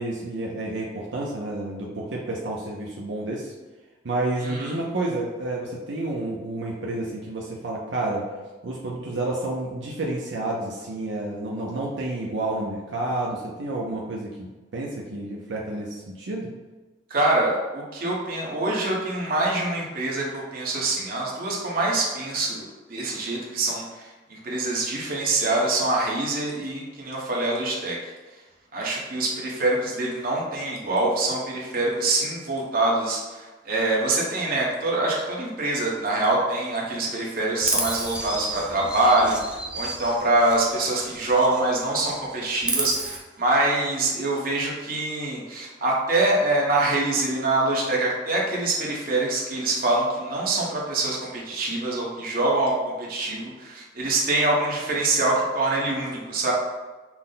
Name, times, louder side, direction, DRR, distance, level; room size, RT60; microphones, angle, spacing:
voice 1, 0.0-3.5 4.0-8.3 8.6-16.5, right 2 dB, 80° right, -3 dB, 0.6 m, -30 dB
voice 2, 17.1-28.0 28.7-39.4 39.7-56.5, right 2 dB, 50° right, -3 dB, 1.1 m, -25 dB
Chirp tweet, 37.6-41.6 41.9-43.2, right 1 dB, 5° right, 0.4 m, -31 dB
5.8 x 2.1 x 3.8 m, 1.2 s
head